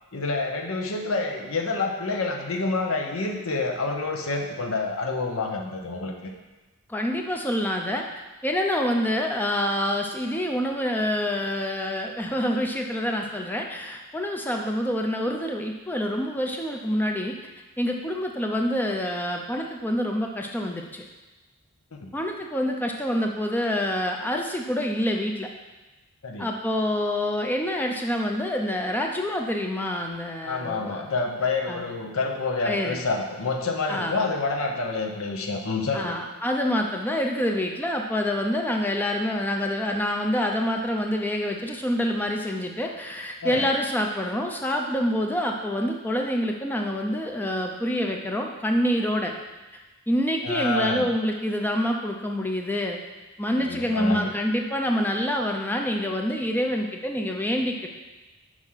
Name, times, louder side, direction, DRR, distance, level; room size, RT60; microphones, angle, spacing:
voice 1, 0.1-6.3 22.0-22.1 26.2-26.5 30.4-36.2 43.4-43.6 50.4-51.0 53.6-54.3, left 3 dB, 75° left, 2 dB, 0.9 m, -28 dB
voice 2, 6.9-8.1 8.4-17.4 17.8-21.0 22.1-25.5 26.4-31.1 31.7-31.9 32.6-33.0 33.9-34.2 35.9-49.3 50.1-53.0 53.4-57.9, equal, 10° left, 2 dB, 0.4 m, -26 dB
6.2 x 4.9 x 5.6 m, 1.2 s
head